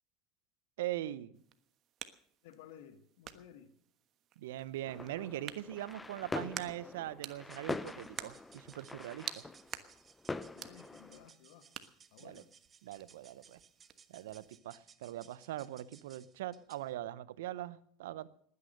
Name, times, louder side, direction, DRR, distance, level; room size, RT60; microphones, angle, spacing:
voice 1, 0.8-1.3 4.4-9.5 12.2-12.4 12.8-13.6 14.1-18.3, right 13 dB, 80° right, 0.7 m, -41 dB
sound 1, 1.3-14.6, right 11 dB, 50° right, 1.2 m, -51 dB
voice 2, 2.4-3.7 10.5-11.7 12.1-12.5, left 9 dB, 75° left, 1.5 m, -56 dB
sound 2, 4.9-11.3, left 3 dB, 15° left, 0.8 m, -44 dB
sound 3, 7.5-17.0, right 6 dB, 30° right, 1.1 m, -63 dB
19.5 x 9.7 x 6.6 m
hypercardioid pair, 85°, 0 cm